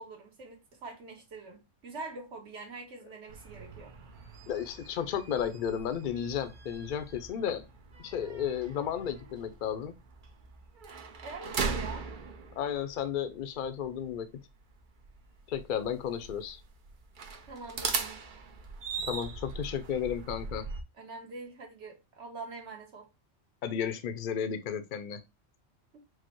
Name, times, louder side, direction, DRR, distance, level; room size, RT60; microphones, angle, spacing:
voice 1, 0.0-3.9 11.2-12.1 17.4-18.3 20.9-23.1 25.9-26.0, right 3 dB, 70° right, 1.5 m, -44 dB
sound 1, 3.3-20.8, right 5 dB, 50° right, 0.7 m, -40 dB
voice 2, 4.5-7.7 8.0-9.9 12.6-14.3 15.5-16.6 19.0-20.7 23.6-25.2, left 8 dB, 55° left, 0.6 m, -33 dB
4.8 x 2.1 x 4.3 m
omnidirectional pair, 1.3 m